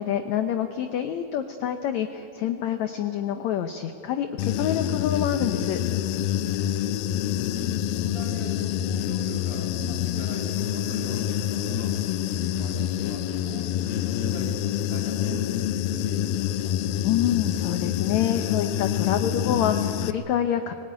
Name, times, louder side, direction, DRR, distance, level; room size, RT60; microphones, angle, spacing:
voice 1, 0.0-5.8 17.0-20.7, left 10 dB, 70° left, 7 dB, 1.8 m, -27 dB
Human voice / Buzz, 4.4-20.1, left 11 dB, 90° left, 2.5 m, -27 dB
voice 2, 6.6-7.1 7.8-16.8, right 3 dB, 65° right, -2 dB, 3.6 m, -42 dB
Gunshot gunfire / Fireworks, 9.3-15.6, right 3 dB, 35° right, 2.3 m, -50 dB
22.0 x 19.5 x 9.6 m, 2.9 s
omnidirectional pair, 4.0 m